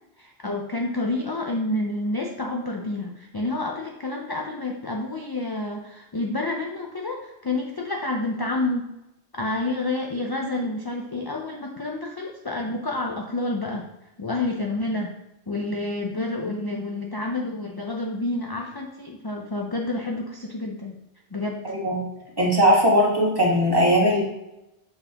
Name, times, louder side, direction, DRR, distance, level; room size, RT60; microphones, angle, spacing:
voice 1, 0.2-8.9 9.3-13.9 14.2-15.1 15.5-21.0 21.3-21.7, left 2 dB, 30° left, 1 dB, 0.4 m, -29 dB
voice 2, 21.6-22.0 22.4-24.2, equal, 25° right, -3 dB, 1.5 m, -19 dB
6.8 x 5.5 x 2.9 m, 0.92 s
omnidirectional pair, 1.1 m